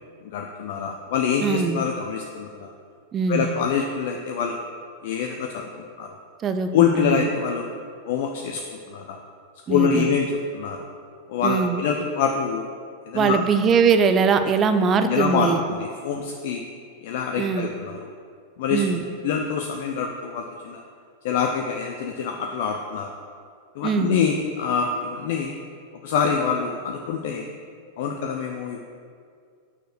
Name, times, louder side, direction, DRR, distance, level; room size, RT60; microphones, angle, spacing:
voice 1, 0.2-2.7 3.3-4.6 5.0-6.1 6.7-7.7 8.1-9.2 9.7-10.9 11.3-12.7 13.1-13.4 15.0-16.6 17.0-18.0 18.6-18.8 19.2-20.8 21.2-23.1 23.8-25.5 26.0-27.5 28.0-28.8, left 6 dB, 50° left, 3 dB, 0.5 m, -25 dB
voice 2, 1.4-1.8 3.1-3.5 6.4-7.3 9.7-10.1 11.4-11.8 13.1-15.6 17.4-17.7 18.7-19.0 23.8-24.2, right 5 dB, 25° right, 9 dB, 0.5 m, -21 dB
6.1 x 4.4 x 6.5 m, 2.2 s
figure-of-eight pair, 90°, 0 cm